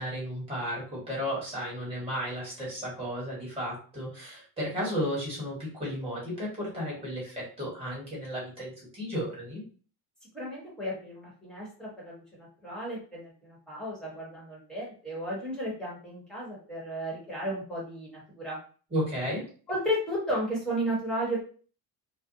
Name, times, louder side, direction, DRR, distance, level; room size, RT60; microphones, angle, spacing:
voice 1, 0.0-9.6 18.9-19.4, equal, 15° right, -6 dB, 1.4 m, -34 dB
voice 2, 10.3-18.6 19.7-21.4, equal, ahead, -6 dB, 1.1 m, -34 dB
2.5 x 2.2 x 2.6 m, 0.40 s
cardioid pair, 145°, 41 cm